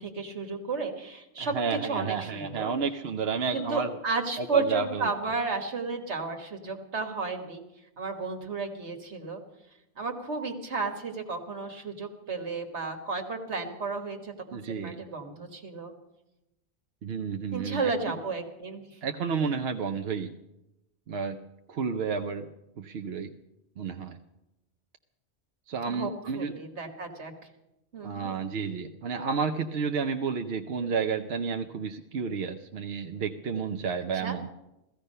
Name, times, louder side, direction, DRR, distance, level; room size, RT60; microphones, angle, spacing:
voice 1, 0.0-1.6 1.8-2.7 3.5-7.6 8.0-9.4 10.0-15.9 17.5-19.0 25.9-27.3 27.9-28.3 34.1-34.4, right 4 dB, 85° right, 4 dB, 2.0 m, -33 dB
voice 2, 1.4-4.0 4.4-5.1 14.5-15.0 17.0-17.9 19.0-20.3 21.1-21.4 21.7-22.5 22.8-23.3 23.8-24.2 25.7-26.5 28.0-34.5, right 5 dB, 70° right, 6 dB, 0.9 m, -31 dB
15.5 x 15.5 x 5.5 m, 0.92 s
omnidirectional pair, 1.1 m